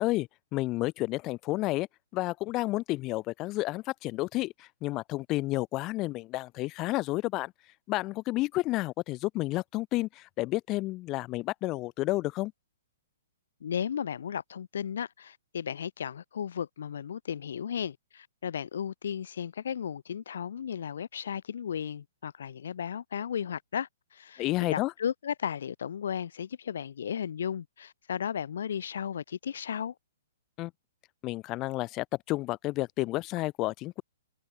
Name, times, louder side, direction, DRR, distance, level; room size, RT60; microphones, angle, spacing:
voice 1, 0.0-1.9 2.1-7.5 7.9-12.5 24.4-24.9 30.6-30.7 31.2-34.0, left 19 dB, 30° left, 2.2 m, -31 dB
voice 2, 13.6-29.9, left 8 dB, 70° left, 3.1 m, -35 dB
open air
hypercardioid pair, 135°, 0 cm